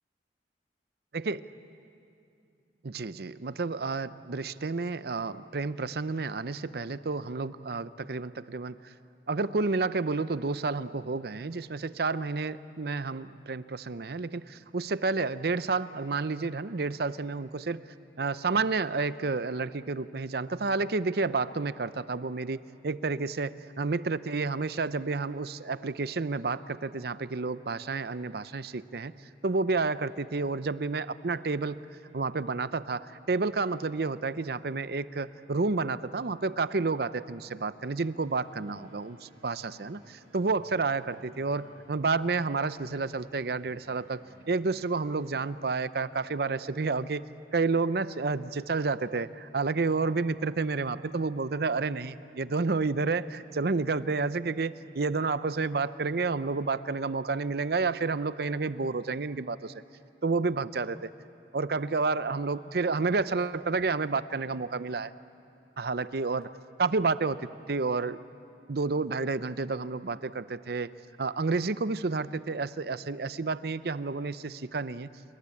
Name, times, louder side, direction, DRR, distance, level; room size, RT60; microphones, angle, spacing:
voice 1, 2.8-8.9 9.3-17.8 18.2-29.1 29.4-31.8 32.1-47.2 47.5-59.7 60.2-61.1 61.5-65.1 65.8-66.5 66.8-67.4 67.7-68.2 68.7-70.9 71.2-75.1, right 4 dB, 60° right, 15 dB, 0.6 m, -30 dB
sound 1, 38.2-45.4, right 1 dB, 40° right, 7.6 m, -58 dB
28.0 x 24.0 x 8.5 m, 2.6 s
head